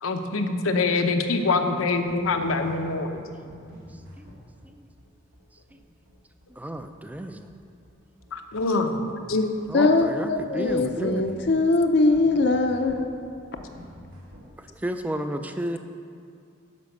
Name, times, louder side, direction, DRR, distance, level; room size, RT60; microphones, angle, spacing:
voice 1, 0.0-3.2 8.3-9.4 15.4-15.5, left 3 dB, 85° left, 5 dB, 0.8 m, -25 dB
sound 1, 2.1-14.5, equal, 90° right, 2.5 m, -47 dB
voice 2, 6.6-7.5 9.7-11.2 14.8-15.8, right 1 dB, 10° right, 8 dB, 0.3 m, -32 dB
voice 3, 9.3-13.1, left 3 dB, 55° left, 5 dB, 0.5 m, -22 dB
10.5 x 5.2 x 6.5 m, 2.3 s
head